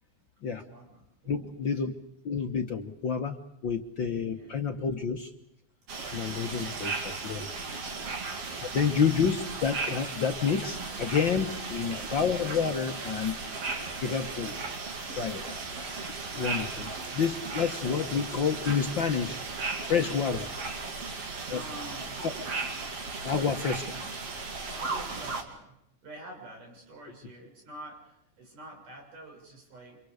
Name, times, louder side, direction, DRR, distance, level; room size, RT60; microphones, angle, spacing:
voice 1, 0.5-1.5 4.3-4.6 16.5-16.9 21.4-22.2 24.7-25.8 26.0-30.0, right 1 dB, 85° right, 1 dB, 8.3 m, -47 dB
voice 2, 1.3-1.9 2.2-5.3 6.1-7.5 8.6-13.4 14.0-14.6 15.1-15.6 16.3-19.4 19.8-20.5 21.5-21.6 22.2-22.3 23.2-24.0, left 6 dB, 50° left, 4 dB, 1.5 m, -29 dB
sound 1, 5.9-25.4, right 4 dB, 50° right, 3.5 m, -36 dB
30.0 x 26.5 x 4.9 m, 0.78 s
omnidirectional pair, 3.5 m